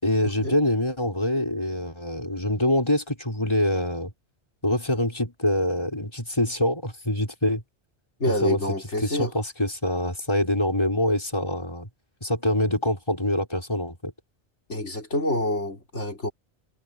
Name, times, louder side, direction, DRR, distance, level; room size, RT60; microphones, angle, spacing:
voice 1, 0.0-4.1 4.6-7.6 8.4-8.6 9.0-11.9 12.2-14.1, left 1 dB, 25° left, 5.8 m, -25 dB
voice 2, 8.2-9.3 14.7-16.3, left 1 dB, 90° left, 6.1 m, -27 dB
omnidirectional pair, 1.1 m